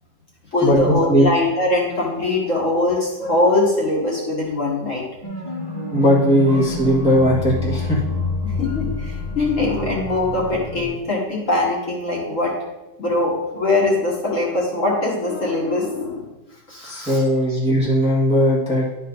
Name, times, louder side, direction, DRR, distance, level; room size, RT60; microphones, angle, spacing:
voice 1, 0.5-5.0 8.4-12.5 13.0-16.3 16.7-17.2 17.5-17.6, left 2 dB, 45° left, -4 dB, 2.1 m, -22 dB
sound 1, 5.2-10.9, left 3 dB, 20° left, 1.5 m, -28 dB
voice 2, 5.9-8.0 16.8-18.9, equal, 5° right, -6 dB, 1.6 m, -18 dB
11.0 x 4.9 x 4.0 m, 1.0 s
omnidirectional pair, 2.0 m